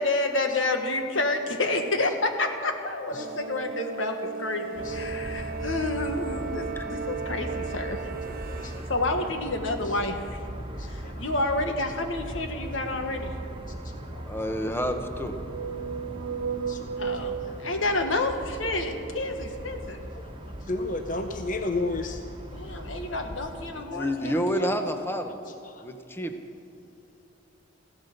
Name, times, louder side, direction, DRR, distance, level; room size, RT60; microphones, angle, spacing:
voice 1, 0.0-8.0 8.6-10.4 10.9-13.3 17.0-20.0 22.5-24.9, left 2 dB, 90° left, 5 dB, 1.6 m, -29 dB
sound 1, 3.1-9.0, right 5 dB, 50° right, 0.9 m, -36 dB
sound 2, 4.7-23.7, right 1 dB, 25° right, 1.3 m, -39 dB
voice 2, 8.3-8.8 10.7-11.2 14.0-14.2 16.6-16.9 17.5-17.8 20.2-20.3 20.7-22.2 25.7-25.8, left 2 dB, 45° left, 6 dB, 0.7 m, -33 dB
sound 3, 12.4-14.0 14.8-18.7, right 6 dB, 80° right, 0.4 m, -36 dB
voice 3, 14.1-15.4 23.7-25.4 25.8-26.4, equal, 10° left, 6 dB, 0.9 m, -29 dB
15.5 x 12.5 x 6.7 m, 2.8 s
head